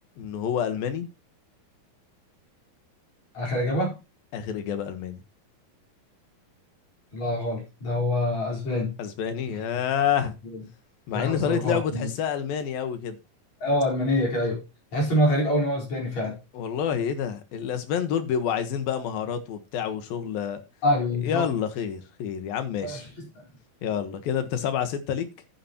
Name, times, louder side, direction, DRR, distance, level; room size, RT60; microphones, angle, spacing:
voice 1, 0.2-1.1 4.3-5.2 9.0-10.3 11.1-13.2 16.5-20.6 21.2-23.0 23.8-25.3, left 8 dB, 75° left, 3.2 m, -28 dB
voice 2, 3.3-4.0 7.1-8.9 9.5-9.9 10.4-10.6 11.1-12.1 13.6-14.6 14.9-16.4 20.8-21.5 22.8-23.2, left 1 dB, 50° left, 5.9 m, -26 dB
11.0 x 10.0 x 3.0 m
omnidirectional pair, 4.2 m